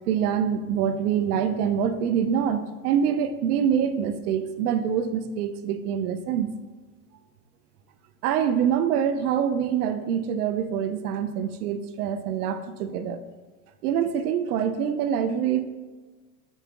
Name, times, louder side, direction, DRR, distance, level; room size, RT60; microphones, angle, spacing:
voice 1, 0.1-6.5 8.2-13.2 13.8-15.6, right 8 dB, 90° right, 11 dB, 0.8 m, -25 dB
5.6 x 4.5 x 6.0 m, 1.4 s
supercardioid pair, 150°, 44 cm